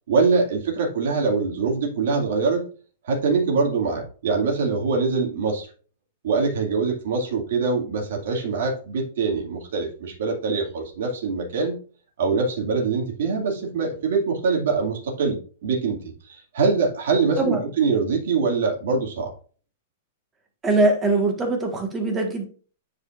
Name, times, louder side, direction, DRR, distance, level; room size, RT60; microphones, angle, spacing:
voice 1, 0.1-2.7 3.0-5.7 6.2-11.8 12.2-16.0 16.3-19.3, right 4 dB, 70° right, 0 dB, 2.3 m, -23 dB
voice 2, 20.6-22.5, right 2 dB, 15° right, 3 dB, 1.5 m, -22 dB
9.6 x 5.1 x 2.5 m, 0.39 s
supercardioid pair, 165°, 0 cm